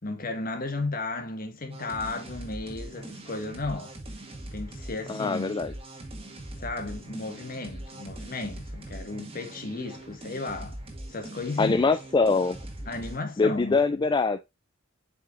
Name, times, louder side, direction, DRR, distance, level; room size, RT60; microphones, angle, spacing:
voice 1, 0.0-4.0 4.5-5.6 6.6-10.8 11.1-11.8 12.8-13.8, left 2 dB, 45° left, 1.7 m, -34 dB
sound 1, 1.7-13.2, right 1 dB, 30° right, 1.8 m, -41 dB
voice 2, 5.1-5.7 11.6-12.6 13.4-14.4, left 4 dB, 20° left, 0.3 m, -23 dB
7.9 x 5.5 x 2.5 m
head